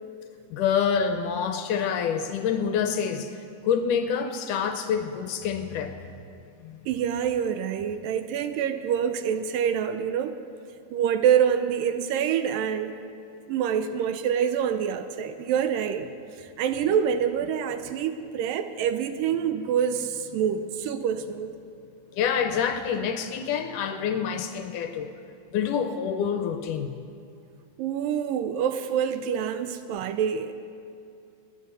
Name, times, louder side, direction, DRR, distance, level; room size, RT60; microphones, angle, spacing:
voice 1, 0.5-6.0 6.6-6.8 22.1-25.1 25.5-27.0, left 7 dB, 75° left, 7 dB, 1.9 m, -27 dB
voice 2, 6.9-10.4 10.9-12.9 13.5-16.1 16.4-21.5 27.8-30.5, right 8 dB, 80° right, 10 dB, 2.1 m, -26 dB
19.5 x 10.0 x 6.7 m, 2.5 s
omnidirectional pair, 4.3 m